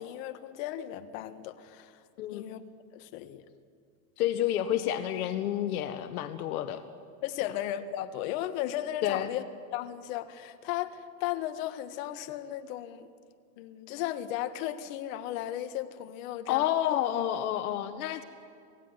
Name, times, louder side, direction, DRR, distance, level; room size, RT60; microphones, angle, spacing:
voice 1, 0.0-1.9 2.3-2.6 2.9-3.4 7.2-9.4 9.7-13.1 13.6-16.7, left 12 dB, 65° left, 1.7 m, -35 dB
voice 2, 4.2-6.8 7.4-7.5 9.0-9.3 16.5-18.2, left 12 dB, 80° left, 1.5 m, -29 dB
27.0 x 17.5 x 9.7 m
supercardioid pair, 125°, 44 cm